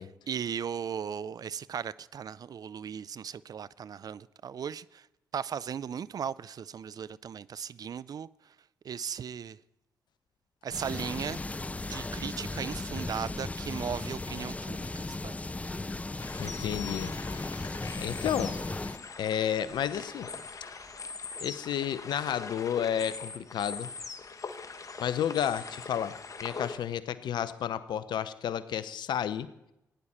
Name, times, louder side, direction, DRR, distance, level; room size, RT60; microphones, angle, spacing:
voice 1, 0.0-5.1 5.3-8.5 8.8-9.6 10.6-11.4 11.9-15.3, right 7 dB, 55° right, 0.4 m, -37 dB
sound 1, 10.7-19.0, left 2 dB, 15° left, 0.4 m, -36 dB
sound 2, 16.2-26.8, left 4 dB, 45° left, 1.2 m, -42 dB
voice 2, 16.4-17.1 18.0-18.6 19.2-20.3 21.4-23.9 25.0-26.1 26.4-29.5, left 9 dB, 70° left, 0.7 m, -31 dB
16.5 x 10.0 x 4.3 m
hypercardioid pair, 45°, 8 cm